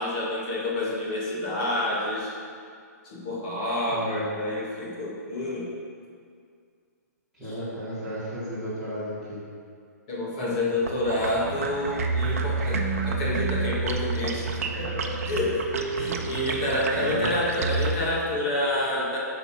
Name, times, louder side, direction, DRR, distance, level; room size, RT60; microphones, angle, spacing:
voice 1, 0.0-2.3 3.0-5.7 10.1-15.6 16.0-19.2, left 1 dB, 25° left, -5 dB, 1.9 m, -28 dB
voice 2, 3.9-4.3 7.4-9.4 15.9-16.1 16.9-17.3, equal, ahead, -16 dB, 2.3 m, -34 dB
sound 1, 10.8-18.0, right 4 dB, 50° right, 0.8 m, -29 dB
11.0 x 4.1 x 6.0 m, 2.2 s
hypercardioid pair, 180°, 9 cm